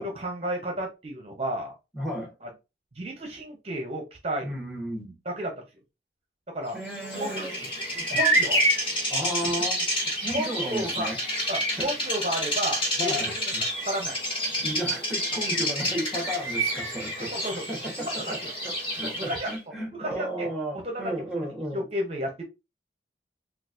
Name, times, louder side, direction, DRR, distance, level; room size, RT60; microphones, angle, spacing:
voice 1, 0.0-1.7 2.4-2.5 3.0-4.6 5.3-5.5 6.5-6.8 7.1-7.7 8.1-8.6 9.4-9.6 10.3-11.1 11.5-13.2 13.9-14.2 17.2-17.6 18.0-18.5 19.0-19.5 19.9-20.5 20.8-21.0 21.7-22.4, right 1 dB, 35° right, 0.6 m, -32 dB
voice 2, 1.9-2.3 4.4-5.2 6.7-7.5 7.9-8.0 9.1-9.9 10.2-11.2 11.8-12.0 13.0-13.6 14.6-21.9, equal, ahead, 0.8 m, -34 dB
Bird vocalization bird call bird song, 6.9-19.6, equal, 30° left, 1.5 m, -28 dB
3.8 x 2.3 x 2.4 m
head